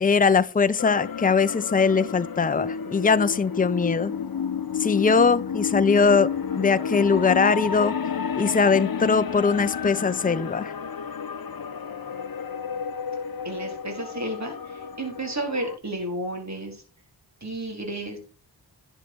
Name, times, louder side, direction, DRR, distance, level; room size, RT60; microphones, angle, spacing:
voice 1, 0.0-4.1 4.8-6.3 6.6-7.9 8.4-10.7, left 5 dB, 20° left, 0.7 m, -21 dB
sound 1, 0.8-15.8, left 7 dB, 55° left, 0.9 m, -31 dB
voice 2, 13.4-16.8 17.4-18.2, right 1 dB, 40° right, 4.2 m, -32 dB
11.5 x 7.8 x 4.6 m
cardioid pair, 50°, 43 cm